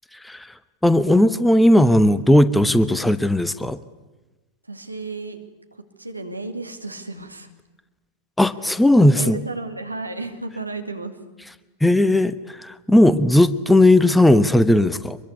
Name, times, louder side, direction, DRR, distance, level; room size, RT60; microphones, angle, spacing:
voice 1, 0.8-3.8 8.4-9.4 11.8-15.2, left 1 dB, 5° left, 14 dB, 1.0 m, -16 dB
voice 2, 4.7-5.4 6.0-7.5 9.0-11.2, right 3 dB, 85° right, 5 dB, 2.5 m, -33 dB
25.0 x 22.5 x 9.7 m, 1.1 s
figure-of-eight pair, 90°, 0 cm